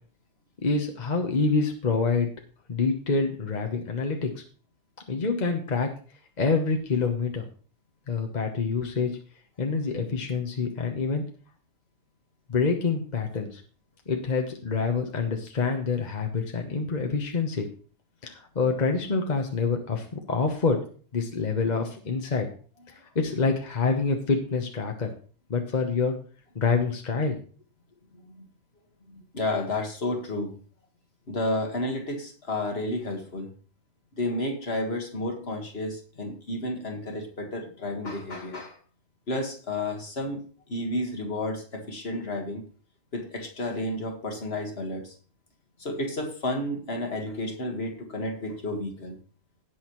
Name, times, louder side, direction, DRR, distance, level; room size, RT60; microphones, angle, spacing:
voice 1, 0.6-2.3 2.7-4.4 5.1-5.9 6.4-7.5 8.1-9.2 9.6-11.3 12.5-13.6 14.1-17.7 18.2-20.8 21.1-22.5 23.1-25.1 25.5-26.2 26.5-27.4, left 4 dB, 40° left, 1.2 m, -26 dB
voice 2, 29.1-30.5 31.3-33.5 34.1-38.8 39.3-42.6 43.1-45.1 45.8-49.2, left 1 dB, 60° left, 2.0 m, -31 dB
17.5 x 6.4 x 3.1 m
omnidirectional pair, 1.2 m